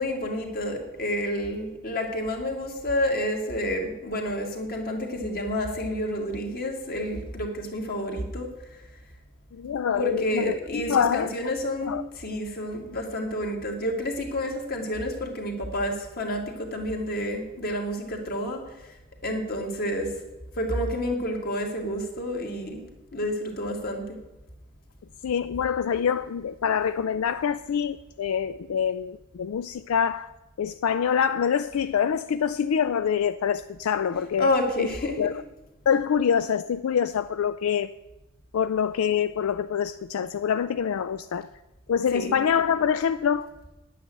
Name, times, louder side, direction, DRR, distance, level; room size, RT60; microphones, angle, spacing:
voice 1, 0.0-8.5 10.0-18.6 19.2-20.1 20.5-22.8 23.1-24.2 34.4-35.4 42.1-42.4, left 1 dB, 45° left, 2.3 m, -29 dB
voice 2, 9.5-11.3 11.8-12.0 25.2-30.3 30.6-34.5 34.8-34.9 35.2-35.4 35.9-37.9 38.5-41.5 41.9-43.5, left 7 dB, 75° left, 0.4 m, -25 dB
10.0 x 9.1 x 7.8 m
head